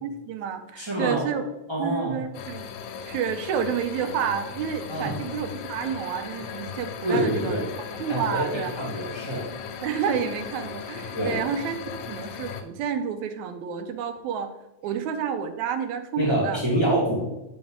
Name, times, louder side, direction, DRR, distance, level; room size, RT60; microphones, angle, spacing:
voice 1, 0.0-1.5 1.8-2.7 3.1-7.6 8.0-8.7 9.8-11.8 12.1-14.5 14.8-16.6, right 7 dB, 85° right, 8 dB, 1.9 m, -29 dB
voice 2, 0.8-1.2 1.7-2.2 4.9-5.2 7.0-7.6 8.1-9.5 11.1-11.4 16.2-17.2, right 1 dB, 30° right, -5 dB, 0.4 m, -26 dB
sound 1, 2.3-12.6, left 7 dB, 90° left, 2.0 m, -37 dB
6.4 x 5.7 x 3.6 m, 0.96 s
omnidirectional pair, 3.4 m